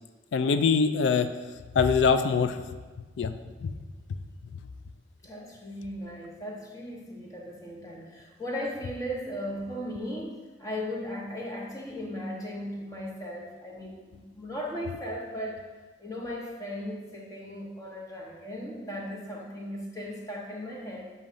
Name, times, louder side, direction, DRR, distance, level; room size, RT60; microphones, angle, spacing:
voice 1, 0.3-1.3 1.7-2.6 3.2-3.3 3.6-3.7, left 5 dB, 80° left, 9 dB, 0.4 m, -23 dB
voice 2, 5.2-15.6 16.0-21.1, equal, 20° left, -2 dB, 1.0 m, -37 dB
7.0 x 2.8 x 5.1 m, 1.3 s
head